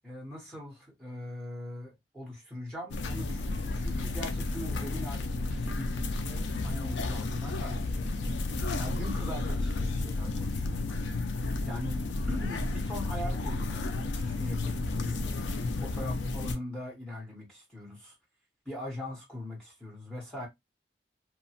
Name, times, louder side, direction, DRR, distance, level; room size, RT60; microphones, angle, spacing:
voice 1, 0.0-5.2 5.5-8.3 8.8-10.8 11.6-12.0 12.3-18.1 18.6-20.5, left 1 dB, 5° left, 0.9 m, -41 dB
sound 1, 2.9-16.6, left 2 dB, 90° left, 0.4 m, -32 dB
2.8 x 2.1 x 2.8 m
head